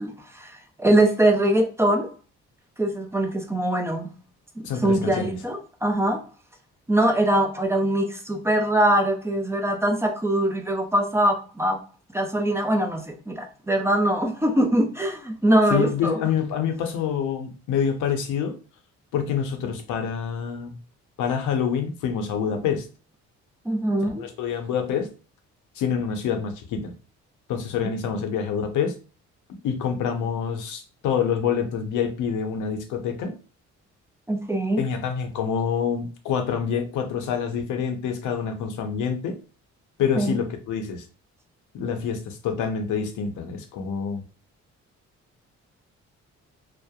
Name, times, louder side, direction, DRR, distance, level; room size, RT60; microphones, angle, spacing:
voice 1, 0.0-2.1 2.8-4.1 4.8-6.2 6.9-11.8 12.1-16.2 23.7-24.3 34.3-34.8 40.2-40.4, right 1 dB, 10° right, 3 dB, 0.4 m, -22 dB
voice 2, 4.6-5.3 15.7-18.6 19.1-20.7 21.2-22.8 24.2-25.1 25.8-26.9 27.5-28.9 29.6-33.3 34.8-39.4 40.0-41.0 41.7-44.2, left 7 dB, 80° left, 6 dB, 0.6 m, -26 dB
2.7 x 2.1 x 2.3 m, 0.35 s
cardioid pair, 90°, 30 cm